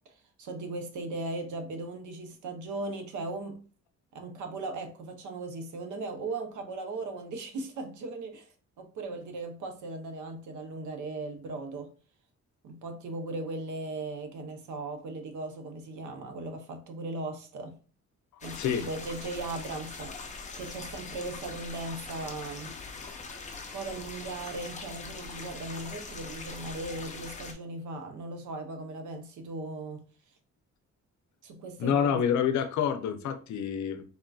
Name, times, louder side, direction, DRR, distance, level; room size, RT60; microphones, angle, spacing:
voice 1, 0.4-3.6 4.1-11.9 12.6-17.8 18.4-20.2 20.6-22.7 23.7-30.0 31.4-32.2, right 2 dB, 85° right, 0.7 m, -38 dB
sound 1, 18.4-27.5, left 4 dB, 25° left, 0.4 m, -42 dB
voice 2, 18.5-18.9 31.8-34.1, left 8 dB, 75° left, 0.5 m, -27 dB
3.5 x 2.5 x 2.3 m
cardioid pair, 145°, 29 cm